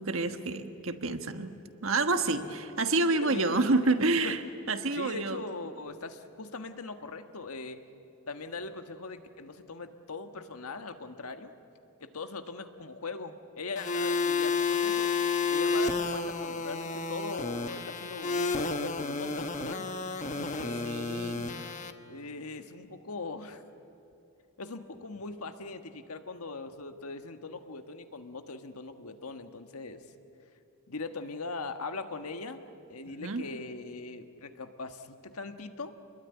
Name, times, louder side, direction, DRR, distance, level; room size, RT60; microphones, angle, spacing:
voice 1, 0.0-1.6 1.8-4.4 4.7-5.4 20.4-20.5 20.8-21.5 33.1-33.4, right 3 dB, 65° right, 7 dB, 1.4 m, -28 dB
voice 2, 3.1-3.9 4.2-4.3 5.0-7.8 8.3-11.5 12.0-15.1 15.5-20.0 20.4-21.0 22.1-23.6 24.6-30.0 30.9-32.6 32.9-35.9, left 3 dB, 85° left, 7 dB, 1.5 m, -40 dB
sound 1, 13.8-21.9, left 4 dB, 35° left, 1.2 m, -31 dB
27.5 x 21.5 x 9.7 m, 2.7 s
head